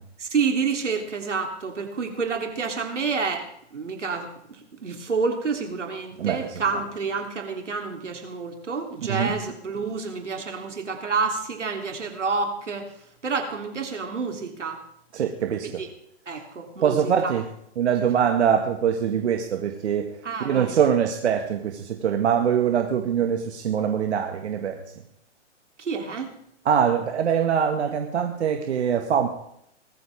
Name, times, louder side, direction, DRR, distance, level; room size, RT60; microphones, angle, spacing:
voice 1, 0.2-3.5 3.7-12.9 13.2-14.8 15.6-15.9 16.3-17.3 20.2-20.9 25.8-26.3, right 5 dB, 90° right, 4 dB, 3.4 m, -29 dB
voice 2, 15.1-15.7 16.8-17.4 17.8-20.1 20.5-24.8 26.7-29.3, right 8 dB, 70° right, 4 dB, 1.9 m, -23 dB
20.5 x 14.0 x 3.6 m, 0.74 s
hypercardioid pair, 125°, 35 cm